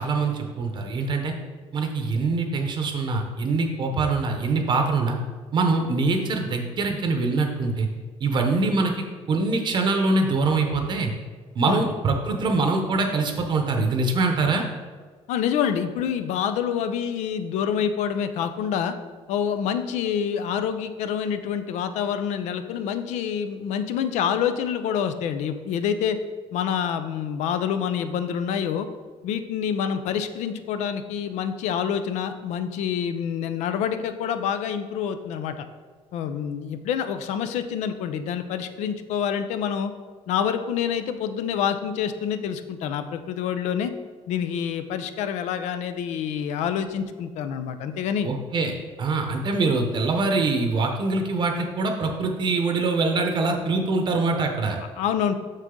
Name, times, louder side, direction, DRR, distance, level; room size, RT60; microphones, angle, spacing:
voice 1, 0.0-1.3 1.7-5.2 5.5-7.9 8.2-11.1 11.5-14.6 48.2-48.7 49.0-54.8, right 3 dB, 40° right, 3 dB, 0.8 m, -24 dB
voice 2, 15.3-18.9 19.3-26.2 26.5-28.9 29.2-35.7 36.1-39.9 40.3-43.9 44.3-48.3 55.0-55.4, left 8 dB, 80° left, 10 dB, 0.6 m, -27 dB
6.5 x 6.4 x 3.7 m, 1.5 s
cardioid pair, 140°, 12 cm